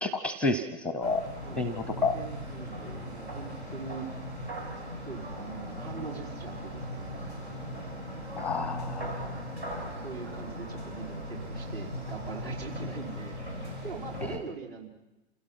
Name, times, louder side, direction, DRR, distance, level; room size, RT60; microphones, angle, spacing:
voice 1, 0.0-1.2 1.6-2.1 8.4-9.1 14.3-14.4, left 3 dB, 5° left, 13 dB, 0.6 m, -30 dB
sound 1, 1.0-14.4, equal, 90° right, 6.8 m, -38 dB
voice 2, 1.4-4.1 5.1-7.3 10.0-13.3 13.8-14.9, right 5 dB, 65° right, -2 dB, 5.1 m, -42 dB
27.5 x 16.5 x 5.8 m, 1.0 s
figure-of-eight pair, 120°, 33 cm